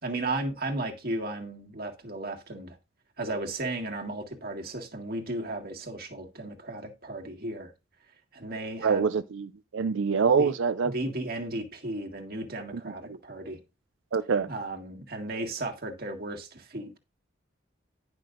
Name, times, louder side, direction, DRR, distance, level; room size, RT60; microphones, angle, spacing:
voice 1, 0.0-2.8 3.2-7.7 8.3-9.1 10.4-10.5 10.8-13.6 14.5-17.0, right 2 dB, 50° right, 1.9 m, -35 dB
voice 2, 8.8-10.9 13.1-13.2 14.1-14.5, right 5 dB, 85° right, 0.5 m, -25 dB
10.5 x 6.1 x 3.9 m
head